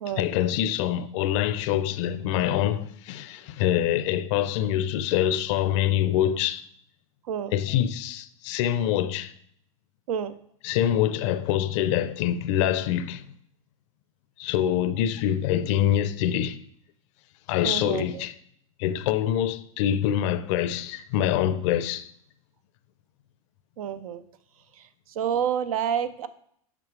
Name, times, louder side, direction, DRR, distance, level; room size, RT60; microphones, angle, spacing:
voice 1, 0.2-6.7 7.5-9.3 10.6-13.2 14.4-16.6 17.5-18.3 18.8-22.1, left 11 dB, 55° left, 0.5 m, -25 dB
voice 2, 17.6-18.2 23.8-24.2 25.2-26.3, right 8 dB, 75° right, 0.6 m, -28 dB
7.4 x 5.2 x 3.2 m
hypercardioid pair, 110°, 18 cm